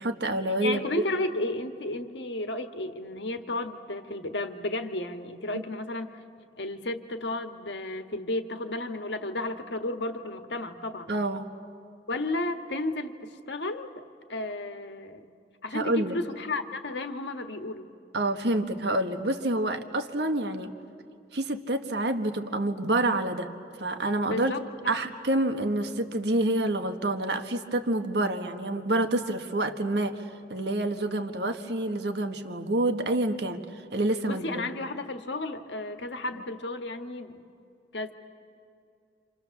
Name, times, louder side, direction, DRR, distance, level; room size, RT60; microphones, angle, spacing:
voice 1, 0.0-0.8 5.5-5.6 11.1-11.4 15.7-16.1 18.1-20.7 21.3-23.5 23.8-24.5 24.9-34.7, right 1 dB, 70° right, 7 dB, 1.5 m, -28 dB
voice 2, 0.6-6.1 6.6-11.1 12.1-13.9 14.3-15.3 15.6-17.9 24.2-24.9 34.3-37.4 37.9-38.1, left 2 dB, 80° left, 7 dB, 1.5 m, -33 dB
30.0 x 27.0 x 7.1 m, 2.5 s
head